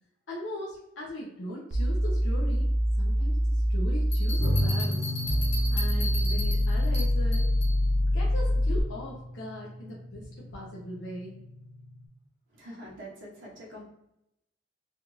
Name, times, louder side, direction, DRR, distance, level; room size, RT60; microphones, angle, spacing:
voice 1, 0.3-2.7 3.0-5.1 5.7-7.5 8.1-11.4, equal, 75° left, -6 dB, 0.8 m, -39 dB
sound 1, 1.7-8.8, equal, 60° right, 0.5 m, -25 dB
sound 2, 4.1-7.8, left 1 dB, 35° left, 1.4 m, -37 dB
sound 3, 4.4-12.0, left 1 dB, 15° left, 0.8 m, -35 dB
voice 2, 12.5-13.8, equal, 80° right, -4 dB, 1.0 m, -44 dB
3.3 x 2.4 x 3.0 m, 0.84 s
head